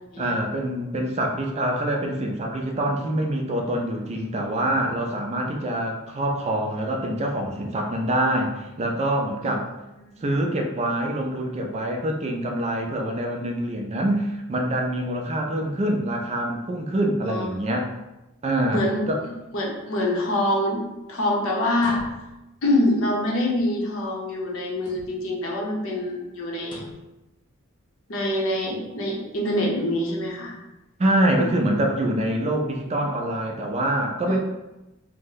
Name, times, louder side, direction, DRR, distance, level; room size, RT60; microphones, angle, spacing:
voice 1, 0.2-9.7 10.2-17.9 18.4-19.2 31.0-34.4, right 1 dB, 30° right, 1 dB, 0.3 m, -25 dB
voice 2, 18.7-20.8 21.1-22.0 22.6-26.8 28.1-30.5 31.4-31.5 34.3-34.4, left 1 dB, 65° left, -1 dB, 0.7 m, -25 dB
sound 1, 21.7-22.6 24.7-25.4 26.6-27.2, equal, 25° left, 0.5 m, -42 dB
2.7 x 2.0 x 3.7 m, 0.97 s
head